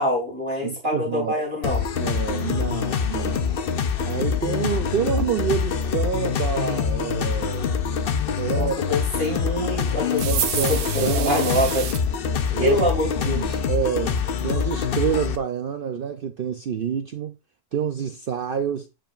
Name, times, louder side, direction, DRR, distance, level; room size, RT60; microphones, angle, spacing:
voice 1, 0.0-1.8 8.6-10.4 10.7-11.9 12.6-13.6, left 1 dB, 40° right, 2.6 m, -25 dB
voice 2, 0.6-1.3 2.0-3.5 4.0-7.8 8.4-8.8 10.2-11.6 12.5-12.8 13.2-17.4 17.7-18.9, right 8 dB, 90° right, 0.4 m, -27 dB
sound 1, 1.6-15.4, left 6 dB, 55° left, 0.6 m, -25 dB
sound 2, 10.2-12.0, right 9 dB, 65° right, 1.0 m, -28 dB
8.9 x 5.0 x 2.5 m
omnidirectional pair, 1.6 m